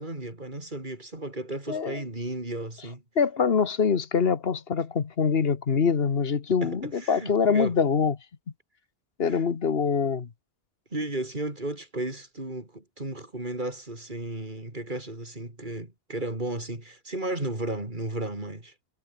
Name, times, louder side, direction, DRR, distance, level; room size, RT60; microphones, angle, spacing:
voice 1, 0.0-3.0 6.6-7.8 9.3-9.4 10.9-18.7, right 2 dB, 50° right, 4.4 m, -34 dB
voice 2, 1.7-2.0 3.2-8.2 9.2-10.3, left 6 dB, 70° left, 1.5 m, -24 dB
omnidirectional pair, 1.1 m